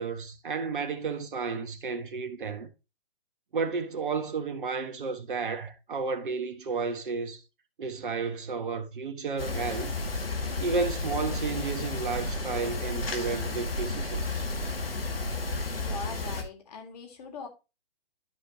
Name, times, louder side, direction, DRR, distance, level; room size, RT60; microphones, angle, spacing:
voice 1, 0.0-2.7 3.5-7.4 7.8-9.9 10.6-14.5, right 4 dB, 60° right, 1.6 m, -32 dB
sound 1, 9.4-16.4, left 2 dB, 75° left, 2.2 m, -32 dB
voice 2, 15.8-17.5, left 5 dB, 45° left, 3.2 m, -41 dB
13.0 x 4.9 x 2.9 m
figure-of-eight pair, 135°, 29 cm